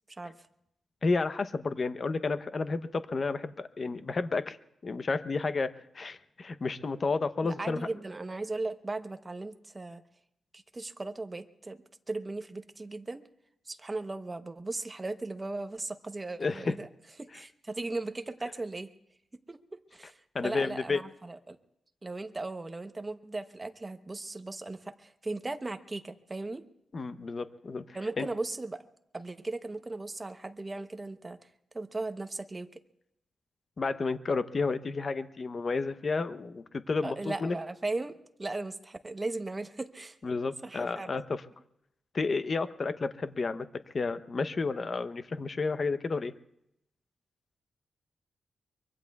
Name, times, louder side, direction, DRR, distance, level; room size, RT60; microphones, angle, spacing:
voice 1, 1.0-4.6 4.8-7.9 16.4-16.8 20.3-21.0 26.9-28.3 33.8-37.6 40.2-41.4 42.1-43.7 43.9-46.3, left 4 dB, 40° left, 12 dB, 0.7 m, -31 dB
voice 2, 7.4-10.0 10.5-13.2 13.7-16.9 17.2-18.9 19.5-21.6 22.0-26.6 27.9-28.9 29.1-31.4 31.7-32.8 37.0-40.2 40.6-41.1, right 2 dB, 20° right, 8 dB, 0.9 m, -37 dB
24.0 x 23.5 x 2.3 m, 0.80 s
wide cardioid pair, 115°, 0 cm